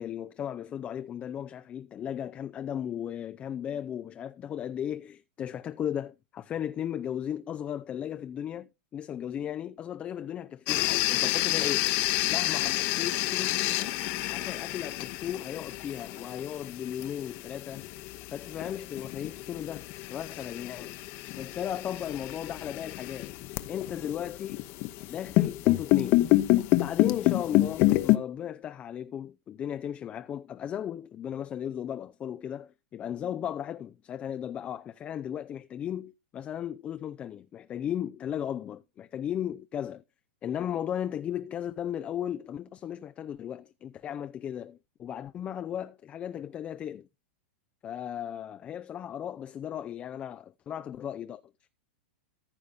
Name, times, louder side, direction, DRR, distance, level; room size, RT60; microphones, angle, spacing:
voice 1, 0.0-11.9 12.3-13.9 14.3-17.8 18.3-21.0 21.4-23.3 23.7-24.6 25.1-26.3 26.7-40.0 40.4-47.1 47.8-51.4, left 10 dB, 20° left, 0.4 m, -36 dB
sound 1, 10.7-28.2, left 18 dB, 40° left, 0.9 m, -28 dB
14.0 x 5.7 x 3.8 m
supercardioid pair, 145°, 6 cm